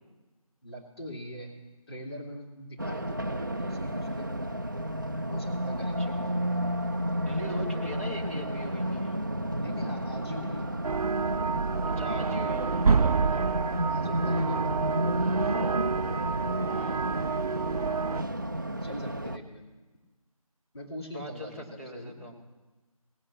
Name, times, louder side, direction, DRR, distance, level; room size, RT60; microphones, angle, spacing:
voice 1, 0.6-1.5 1.9-4.3 5.3-6.3 9.6-10.6 13.3-14.7 18.8-19.6 20.7-22.2, equal, 45° left, -1 dB, 2.7 m, -42 dB
Race car auto racing, 2.8-19.4, equal, 35° right, 0.6 m, -31 dB
voice 2, 6.0-6.3 7.2-9.1 11.9-12.8 16.7-17.1 21.1-22.3, left 1 dB, 20° left, -4 dB, 2.1 m, -40 dB
sound 1, 10.8-18.2, right 5 dB, 80° right, 0.4 m, -29 dB
18.0 x 7.4 x 7.4 m, 1.2 s
figure-of-eight pair, 175°, 19 cm